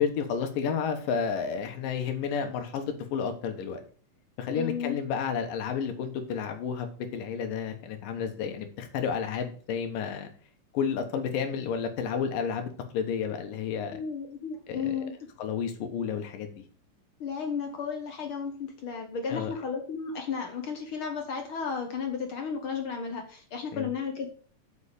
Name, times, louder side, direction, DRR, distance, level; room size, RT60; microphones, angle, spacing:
voice 1, 0.0-3.8 4.4-10.3 10.7-14.0 14.8-14.9 15.4-16.6 19.3-19.5 23.7-23.9, left 7 dB, 80° left, 6 dB, 2.9 m, -31 dB
voice 2, 4.5-5.0 13.9-15.3 17.2-24.3, left 6 dB, 65° left, 4 dB, 1.3 m, -33 dB
7.9 x 5.5 x 6.6 m, 0.43 s
omnidirectional pair, 3.9 m